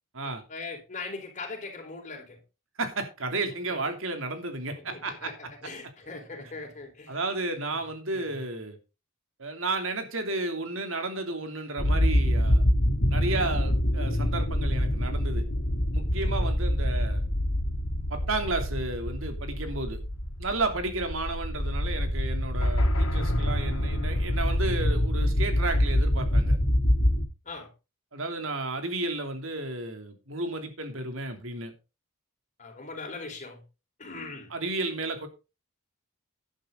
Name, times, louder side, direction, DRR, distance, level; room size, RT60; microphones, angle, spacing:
voice 1, 0.2-2.4 3.5-3.9 4.7-7.2 7.7-7.8 8.1-8.5 16.2-16.5 27.4-27.7 32.6-33.6 34.0-34.5, left 3 dB, 35° left, 3 dB, 4.3 m, -41 dB
voice 2, 2.8-5.3 7.1-8.8 9.4-12.6 13.1-15.4 15.9-17.2 18.1-20.0 20.4-26.6 28.1-31.7 34.5-35.3, right 2 dB, 65° right, 6 dB, 3.0 m, -32 dB
sound 1, 11.8-27.2, equal, 75° left, 2.7 m, -26 dB
11.5 x 11.0 x 3.9 m, 0.29 s
head